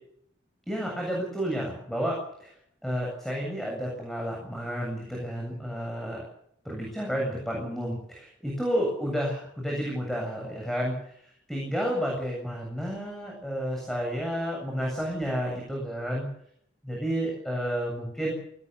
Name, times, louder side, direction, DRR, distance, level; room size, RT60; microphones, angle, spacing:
voice 1, 0.7-2.5 2.8-6.2 6.6-11.2 11.5-16.3 16.8-18.3, equal, ahead, -1 dB, 7.7 m, -31 dB
23.5 x 20.0 x 7.0 m, 0.70 s
head